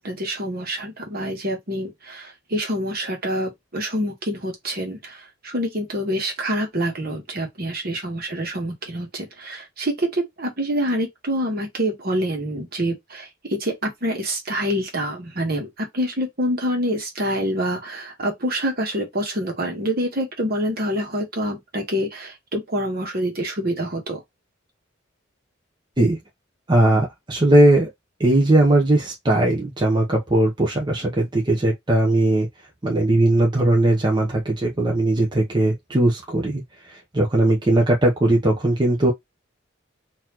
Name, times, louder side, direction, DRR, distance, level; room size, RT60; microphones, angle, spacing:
voice 1, 0.0-24.2, equal, 50° right, 1.4 m, -26 dB
voice 2, 26.7-27.9 28.2-32.5 32.8-36.6 36.9-39.1, right 1 dB, 25° right, 0.8 m, -19 dB
4.0 x 2.8 x 2.9 m
head